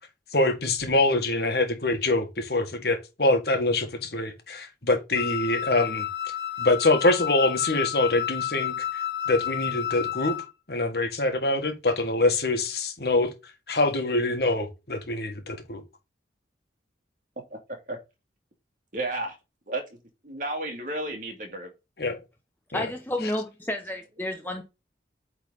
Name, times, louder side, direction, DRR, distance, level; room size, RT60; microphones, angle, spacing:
voice 1, 0.3-6.1 6.6-9.0 9.3-10.4 10.7-13.3 13.7-15.8 22.0-22.2 22.7-22.9, left 2 dB, 60° left, 1.7 m, -25 dB
Wind instrument woodwind instrument, 5.1-10.5, left 11 dB, 75° left, 1.9 m, -31 dB
voice 2, 17.5-18.0 18.9-19.4 19.7-20.0 20.2-21.7, right 2 dB, 45° right, 2.5 m, -33 dB
voice 3, 22.7-24.6, left 1 dB, 10° left, 0.9 m, -31 dB
8.8 x 4.0 x 4.1 m
head